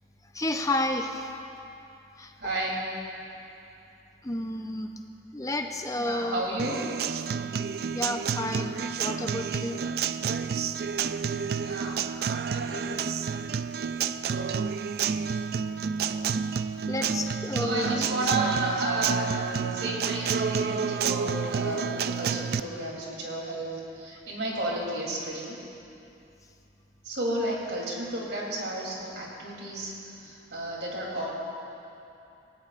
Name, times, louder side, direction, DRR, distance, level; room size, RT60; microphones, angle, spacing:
voice 1, 0.3-1.3 2.2-2.3 4.2-4.9 5.3-6.4 7.9-9.8 16.0-16.3 16.9-18.1, left 1 dB, 20° left, 4 dB, 0.7 m, -31 dB
voice 2, 2.4-2.9 6.0-6.8 11.6-12.0 12.5-12.9 17.5-19.4 19.7-25.6 27.0-29.9 30.2-31.3, right 1 dB, 75° right, -3 dB, 3.2 m, -32 dB
Acoustic guitar, 6.6-22.6, right 6 dB, 55° right, 0.3 m, -29 dB
19.0 x 17.5 x 2.5 m, 2.7 s
head